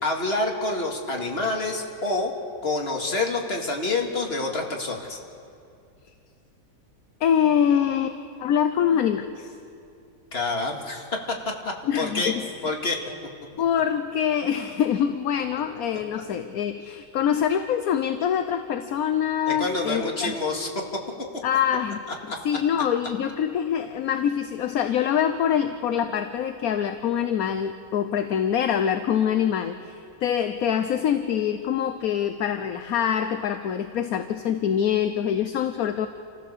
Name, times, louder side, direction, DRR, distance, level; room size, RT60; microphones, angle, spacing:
voice 1, 0.0-2.3 2.6-5.2 10.3-11.1 11.6-12.3 12.6-13.0 19.5-20.8 22.3-22.4, left 2 dB, 35° left, 1 dB, 2.4 m, -27 dB
voice 2, 7.2-9.5 11.9-12.4 13.6-20.4 21.4-22.0 22.4-36.1, left 8 dB, 65° left, 9 dB, 1.2 m, -24 dB
28.5 x 15.0 x 6.8 m, 2.4 s
omnidirectional pair, 1.8 m